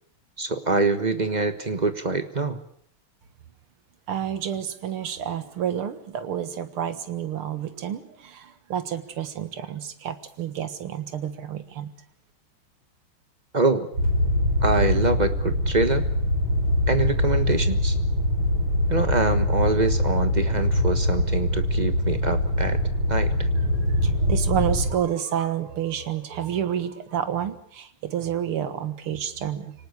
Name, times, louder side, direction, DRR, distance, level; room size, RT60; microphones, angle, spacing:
voice 1, 0.4-2.6 13.5-13.9 14.6-16.1 16.9-18.0 18.9-22.8 23.1-23.5, right 3 dB, 25° right, 9 dB, 1.2 m, -25 dB
voice 2, 4.1-11.9 23.8-29.7, right 9 dB, 90° right, 11 dB, 2.4 m, -29 dB
sound 1, 13.9-24.9, left 1 dB, 65° right, 6.8 m, -23 dB
25.0 x 19.0 x 8.3 m, 0.64 s
omnidirectional pair, 2.3 m